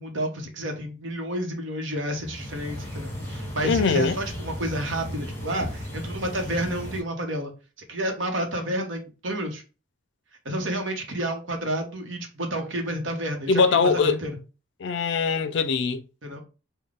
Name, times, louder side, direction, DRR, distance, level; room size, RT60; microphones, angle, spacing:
voice 1, 0.0-7.5 7.9-9.6 10.4-14.3 16.2-16.4, right 1 dB, 75° right, 1.0 m, -30 dB
sound 1, 2.1-7.0, equal, 10° left, 1.3 m, -35 dB
voice 2, 3.6-4.2 13.5-14.2 14.8-16.0, left 4 dB, 65° left, 0.4 m, -22 dB
3.8 x 2.2 x 3.6 m
head